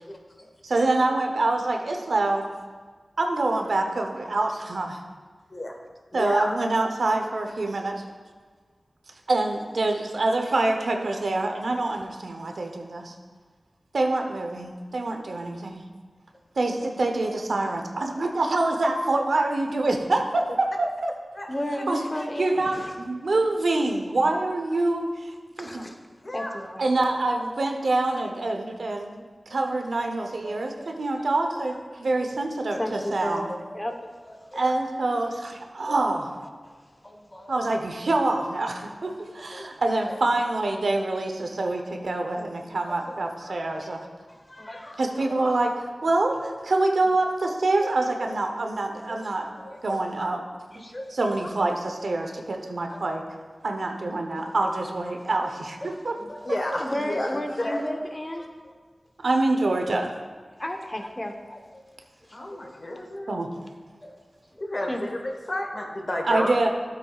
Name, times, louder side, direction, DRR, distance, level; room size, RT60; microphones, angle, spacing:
voice 1, 0.6-2.4 3.2-5.0 6.1-8.0 9.3-13.1 13.9-15.8 16.6-21.1 21.9-22.0 22.4-25.8 26.8-29.2 29.5-33.5 34.5-36.3 37.5-44.0 45.0-45.7 46.0-49.5 49.8-50.4 50.7-50.8 51.1-53.2 53.6-56.2 56.5-56.6 59.2-60.1 63.3-63.5 66.2-66.7, right 2 dB, 85° right, 4 dB, 0.8 m, -26 dB
voice 2, 6.1-6.5 21.3-21.5 22.2-22.3 26.2-26.5 34.5-34.7 39.6-39.7 44.6-44.7 45.4-45.5 50.2-50.3 56.2-57.8 62.3-63.3 64.6-65.2 65.5-66.5, left 1 dB, 45° left, 2 dB, 1.3 m, -31 dB
voice 3, 21.5-23.0 25.6-26.0 26.3-26.9 30.4-30.6 32.8-34.7 35.9-36.1 36.6-36.7 37.0-37.6 39.3-39.6 40.1-40.2 41.4-41.7 42.8-43.0 43.5-44.0 44.3-45.4 47.8-47.9 48.2-48.3 49.1-49.2 49.5-50.2 50.7-51.3 52.3-52.4 52.9-53.0 54.4-54.5 55.8-56.0 56.3-56.5 56.8-58.7 59.9-60.0 60.6-61.8 62.3-62.7 64.0-64.1 64.9-65.0, left 1 dB, 30° left, 4 dB, 1.0 m, -35 dB
12.5 x 8.1 x 2.4 m, 1.5 s
wide cardioid pair, 45°, 0 cm